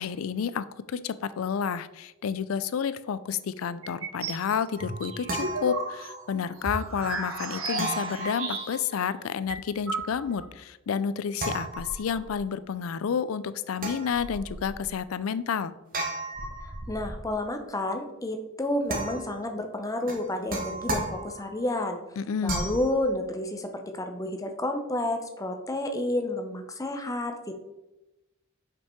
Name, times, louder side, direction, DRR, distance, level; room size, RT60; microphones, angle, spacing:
voice 1, 0.0-15.7 22.2-22.7, left 7 dB, 75° left, 15 dB, 0.4 m, -30 dB
sound 1, 3.8-4.4 4.8-9.0 9.2-9.3 9.5-10.5, right 2 dB, 75° right, 1.3 m, -34 dB
sound 2, 4.7-6.3 7.8-9.2 11.4-12.4 13.8-14.8 15.9-17.3 18.9-19.5 20.1-21.6 22.4-22.9, right 2 dB, 45° right, 1.2 m, -35 dB
voice 2, 16.9-22.0 22.4-27.6, left 1 dB, 15° left, 5 dB, 0.7 m, -30 dB
5.5 x 5.3 x 4.4 m, 0.99 s
head